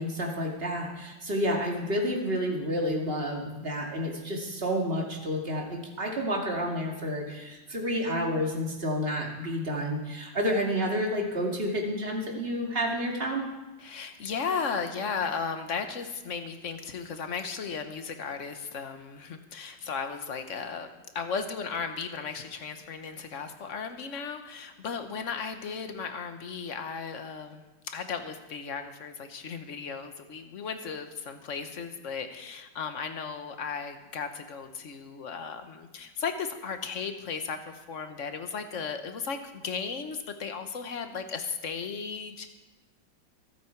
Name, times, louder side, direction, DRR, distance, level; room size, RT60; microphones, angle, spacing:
voice 1, 0.0-13.4, equal, 30° right, 0 dB, 2.5 m, -30 dB
voice 2, 13.8-20.9 21.1-42.5, left 5 dB, 50° left, 8 dB, 1.2 m, -35 dB
24.5 x 8.6 x 4.6 m, 1.1 s
omnidirectional pair, 2.0 m